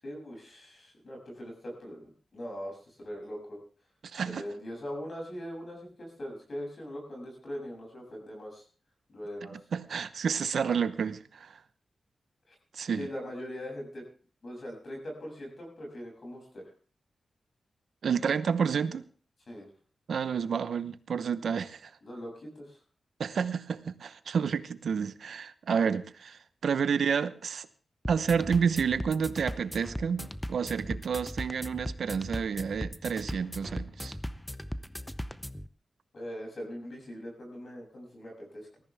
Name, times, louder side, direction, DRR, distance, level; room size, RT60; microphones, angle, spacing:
voice 1, 0.0-3.6 4.3-8.6 9.1-9.5 12.5-12.6 13.0-14.0 14.4-16.7 19.5-19.7 22.0-22.8 36.1-38.7, equal, 50° left, 7.3 m, -41 dB
voice 2, 4.1-4.4 9.5-11.6 12.7-13.1 18.0-19.0 20.1-21.9 23.2-27.7 28.1-34.1, right 6 dB, 80° right, 0.9 m, -30 dB
sound 1, 28.0-35.7, equal, 5° left, 0.7 m, -38 dB
20.0 x 14.5 x 3.5 m
wide cardioid pair, 100°, 0 cm